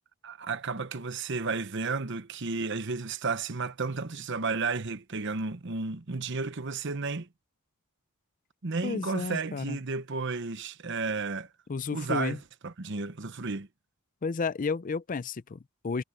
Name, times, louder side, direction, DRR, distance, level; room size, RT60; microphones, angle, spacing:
voice 1, 0.2-7.3 8.6-11.5 11.9-13.7, right 4 dB, 60° right, 1.0 m, -32 dB
voice 2, 8.8-9.8 11.7-12.4 14.2-16.0, left 4 dB, 40° left, 0.5 m, -32 dB
head